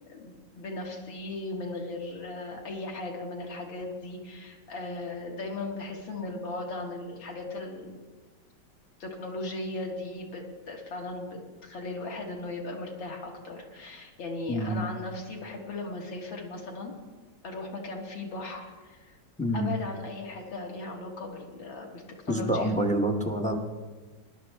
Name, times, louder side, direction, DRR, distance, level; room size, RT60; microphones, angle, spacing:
voice 1, 0.1-8.0 9.0-16.9 17.4-19.2 19.5-22.8, left 2 dB, 85° left, -1 dB, 2.6 m, -37 dB
voice 2, 14.5-14.8 19.4-19.7 22.3-23.6, right 1 dB, 10° left, 3 dB, 0.3 m, -27 dB
19.0 x 11.0 x 3.4 m, 1.3 s
omnidirectional pair, 2.1 m